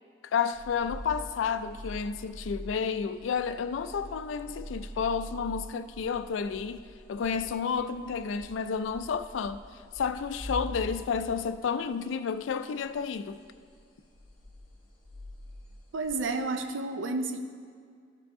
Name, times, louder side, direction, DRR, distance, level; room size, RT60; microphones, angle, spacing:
voice 1, 0.2-6.8 7.1-9.6 9.9-13.4, left 6 dB, 80° left, 0.3 m, -31 dB
sound 1, 0.5-12.0 12.3-12.5 12.8-13.8 14.1-16.4, equal, 25° left, 1.3 m, -44 dB
voice 2, 15.9-17.4, right 3 dB, 85° right, 0.6 m, -31 dB
12.5 x 4.8 x 3.6 m
head